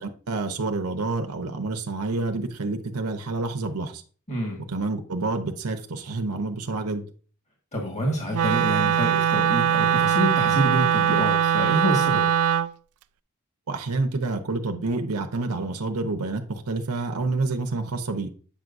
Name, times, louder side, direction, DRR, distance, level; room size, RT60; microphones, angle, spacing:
voice 1, 0.0-4.0 4.7-7.0 13.7-18.3, right 3 dB, 85° right, 5 dB, 0.8 m, -28 dB
voice 2, 4.3-4.6 7.7-12.3, equal, 30° left, 0 dB, 1.6 m, -27 dB
Wind instrument woodwind instrument, 8.3-12.7, right 9 dB, 70° right, 0.3 m, -21 dB
8.7 x 6.0 x 2.6 m, 0.42 s
head